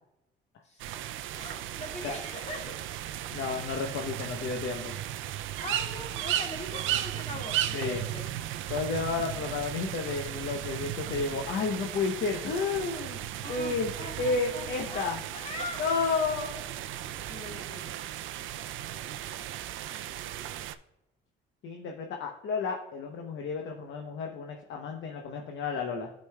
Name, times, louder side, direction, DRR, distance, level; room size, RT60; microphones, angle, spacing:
sound 1, 0.8-20.7, right 12 dB, 80° right, 0.4 m, -36 dB
voice 1, 1.3-2.7 5.6-8.2 13.4-15.8 17.3-18.0, left 1 dB, 35° left, 1 dB, 1.9 m, -41 dB
voice 2, 3.3-5.0 7.7-8.1 8.7-13.9 14.2-15.2 15.8-16.6 18.9-19.0 21.6-26.1, left 4 dB, 70° left, 2 dB, 0.8 m, -32 dB
11.5 x 5.2 x 2.2 m, 0.93 s
cardioid pair, 90°, 20 cm